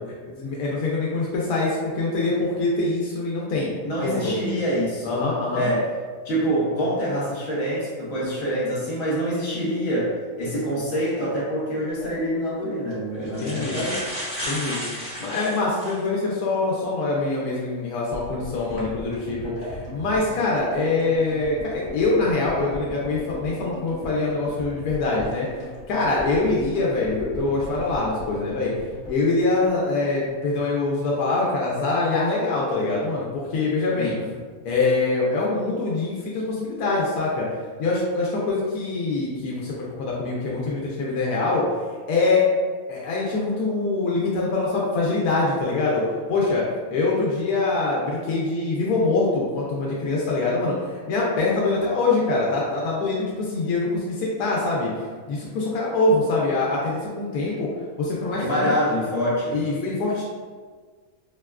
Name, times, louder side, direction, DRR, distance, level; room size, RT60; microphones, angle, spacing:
voice 1, 0.3-3.7 4.0-4.3 5.0-5.7 13.4-13.8 14.4-14.8 15.2-25.5 25.9-28.7 29.1-34.2 34.6-37.5 37.8-41.7 42.1-42.4 42.9-46.6 46.9-54.9 55.3-57.7 58.0-58.7 59.5-60.2, left 3 dB, 85° left, -4 dB, 1.1 m, -24 dB
voice 2, 3.8-5.2 5.5-5.9 6.2-14.0 34.0-34.3 58.4-59.6, equal, 65° left, -7 dB, 1.4 m, -25 dB
sound 1, 11.9-12.1 12.9-13.0 13.3-16.1 16.6-16.7 18.6-18.8 19.4-19.7, equal, 10° right, 0.8 m, -33 dB
sound 2, 18.1-30.3 30.6-30.7 30.9-31.0, left 1 dB, 40° left, 1.0 m, -39 dB
4.7 x 2.2 x 2.3 m, 1.5 s
omnidirectional pair, 1.6 m